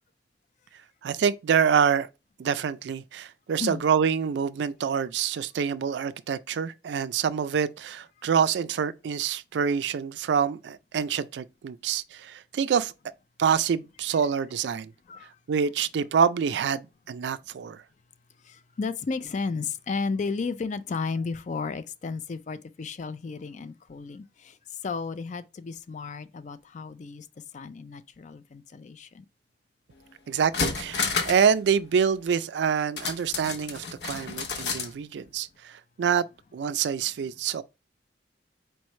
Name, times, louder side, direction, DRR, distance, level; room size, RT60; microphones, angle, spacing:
voice 1, 1.0-2.1 2.4-12.9 13.4-14.9 15.5-17.8 30.3-36.3 36.5-37.6, right 7 dB, 70° right, 0.3 m, -26 dB
voice 2, 18.8-24.2 24.8-27.2 27.5-29.2, left 4 dB, 40° left, 0.4 m, -33 dB
sound 1, 29.9-30.0 30.4-31.5 31.8-31.9 33.0-34.9 35.3-35.4, left 5 dB, 65° left, 0.8 m, -30 dB
4.5 x 3.1 x 3.1 m
head